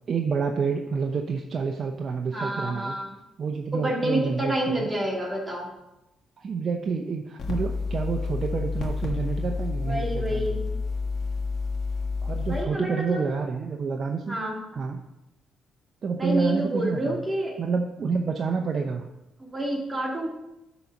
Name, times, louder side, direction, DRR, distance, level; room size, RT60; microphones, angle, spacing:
voice 1, 0.1-3.0 3.4-4.9 6.4-10.5 12.2-14.4 14.7-15.1 16.0-17.2 17.6-19.1, right 5 dB, 45° right, 3 dB, 0.7 m, -28 dB
voice 2, 2.3-3.1 3.7-5.7 9.8-10.6 12.5-13.2 14.3-14.6 16.2-17.6 19.4-20.3, right 1 dB, 20° right, -2 dB, 2.2 m, -28 dB
sound 1, 7.4-12.6, left 4 dB, 60° left, 1.5 m, -29 dB
9.4 x 4.0 x 6.0 m, 0.95 s
cardioid pair, 90°, 0 cm